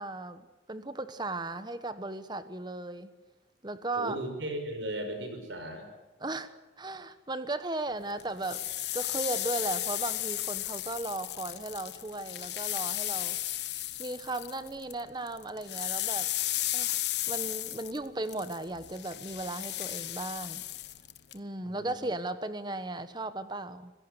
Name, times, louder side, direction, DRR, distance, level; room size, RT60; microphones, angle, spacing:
voice 1, 0.0-3.1 3.6-4.2 6.2-8.6 8.9-13.4 14.0-16.3 16.7-20.6 21.3-23.9, right 2 dB, 25° right, 12 dB, 1.2 m, -36 dB
voice 2, 3.9-5.9 21.6-22.0, right 1 dB, 90° right, 6 dB, 5.5 m, -37 dB
sound 1, 8.2-15.0 15.3-21.4, left 14 dB, 65° left, 1.0 m, -34 dB
25.5 x 17.5 x 8.1 m, 1.1 s
head